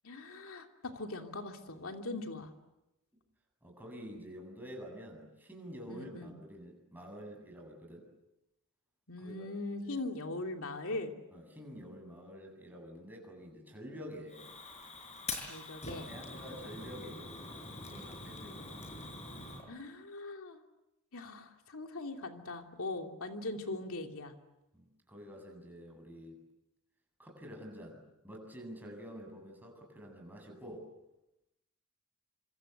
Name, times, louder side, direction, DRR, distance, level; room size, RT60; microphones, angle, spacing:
voice 1, 0.0-2.5 5.9-6.4 9.1-11.1 15.5-16.1 19.7-20.6 21.1-24.3, left 2 dB, 65° left, 4 dB, 2.9 m, -40 dB
voice 2, 3.6-8.1 9.2-9.5 9.8-10.0 11.3-14.5 16.0-18.9 24.7-26.4 27.2-30.9, equal, 10° right, 1 dB, 7.9 m, -48 dB
Fire, 14.3-19.6, left 3 dB, 30° left, 5.8 m, -44 dB
26.5 x 26.5 x 8.2 m, 0.93 s
head